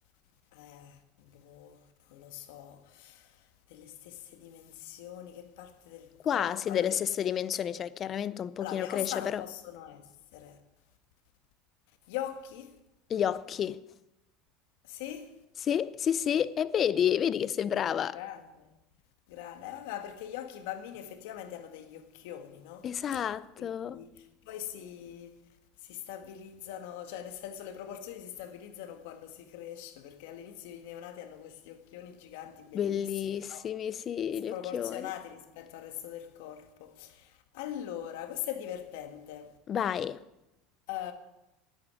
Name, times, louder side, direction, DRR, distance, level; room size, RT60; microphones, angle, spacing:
voice 1, 0.5-1.8 2.1-7.0 8.6-10.1 10.3-10.6 12.1-12.8 14.8-15.4 18.1-18.7 19.3-23.2 23.6-25.4 25.8-33.7 34.5-39.6 40.9-41.1, left 11 dB, 80° left, 1.6 m, -42 dB
voice 2, 6.2-9.4 13.1-13.8 15.6-18.2 22.8-24.0 32.7-35.1 39.7-40.2, left 9 dB, 35° left, 0.5 m, -30 dB
10.5 x 9.0 x 9.4 m
supercardioid pair, 135°, 0 cm